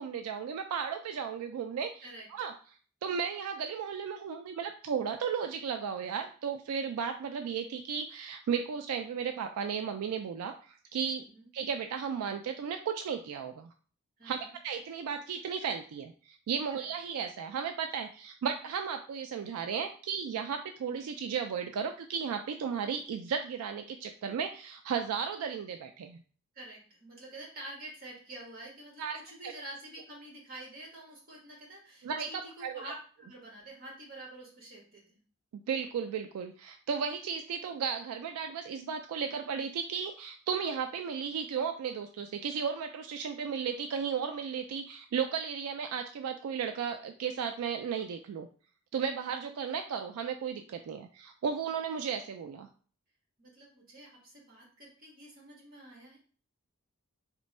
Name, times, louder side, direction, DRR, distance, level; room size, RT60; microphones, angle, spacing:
voice 1, 0.0-2.5 3.0-11.3 11.5-13.7 14.2-26.2 29.0-29.2 29.4-29.5 32.0-32.9 35.5-48.5 48.9-52.7, right 6 dB, 80° right, 6 dB, 0.3 m, -35 dB
voice 2, 14.2-14.5 16.8-16.9 26.5-35.2 53.4-56.2, right 1 dB, 40° right, -2 dB, 1.3 m, -48 dB
3.3 x 2.2 x 4.1 m, 0.42 s
head